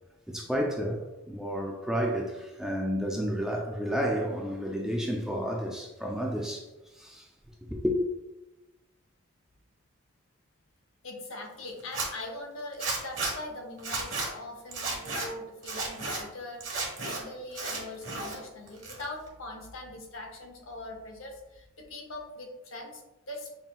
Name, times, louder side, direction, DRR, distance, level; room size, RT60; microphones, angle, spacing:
voice 1, 0.3-7.3 7.7-8.0, equal, ahead, 0.3 m, -31 dB
voice 2, 11.0-23.6, left 2 dB, 70° left, 0.8 m, -42 dB
Zipper (clothing), 11.8-12.1 12.8-13.3 13.8-14.3 14.7-15.3 15.6-16.2 16.6-17.2 17.5-18.4 18.7-19.3, right 3 dB, 60° right, 1.3 m, -33 dB
5.5 x 2.8 x 2.3 m
head